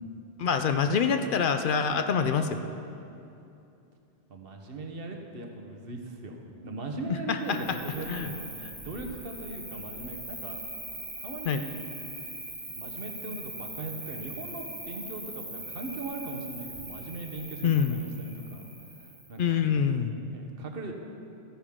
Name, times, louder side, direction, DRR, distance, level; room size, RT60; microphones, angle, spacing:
voice 1, 0.4-2.6 7.3-7.6 8.1-8.3 11.5-11.6 17.6-18.0 19.4-20.1, left 6 dB, 60° left, 8 dB, 0.6 m, -25 dB
voice 2, 4.3-10.6 11.2-11.8 12.7-18.7 19.0-19.7 20.3-20.9, right 2 dB, 60° right, 3 dB, 1.2 m, -39 dB
Cricket, 7.4-19.4, right 1 dB, 25° right, 1.3 m, -41 dB
13.5 x 10.0 x 3.6 m, 2.7 s
omnidirectional pair, 1.1 m